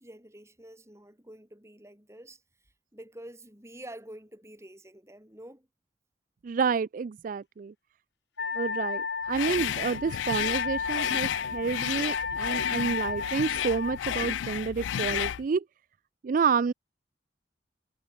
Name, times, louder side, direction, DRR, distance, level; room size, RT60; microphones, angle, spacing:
voice 1, 0.0-2.4 2.9-5.7, right 1 dB, 15° right, 5.6 m, -47 dB
voice 2, 6.4-7.7 8.5-15.6 16.2-16.7, right 5 dB, 45° right, 0.3 m, -29 dB
Wind instrument woodwind instrument, 8.4-14.0, left 4 dB, 65° left, 1.4 m, -34 dB
sound 1, 9.3-15.4, left 11 dB, 80° left, 0.3 m, -32 dB
head